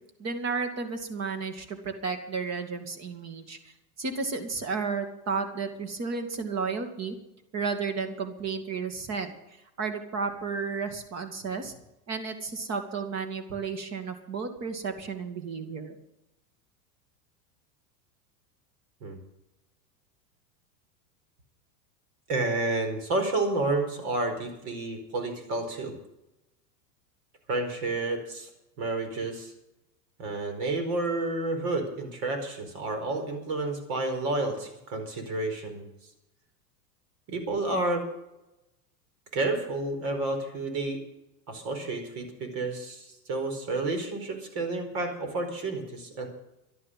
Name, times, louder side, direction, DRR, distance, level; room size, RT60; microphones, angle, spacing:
voice 1, 0.2-7.2 7.5-11.7 12.1-16.0, right 5 dB, 35° right, 7 dB, 2.5 m, -33 dB
voice 2, 22.3-25.9 27.5-28.5 28.8-29.5 30.2-35.9 37.3-38.0 39.3-41.0 41.5-46.3, right 2 dB, 55° right, 6 dB, 4.8 m, -30 dB
12.5 x 11.0 x 7.8 m, 0.90 s
hypercardioid pair, 115°, 48 cm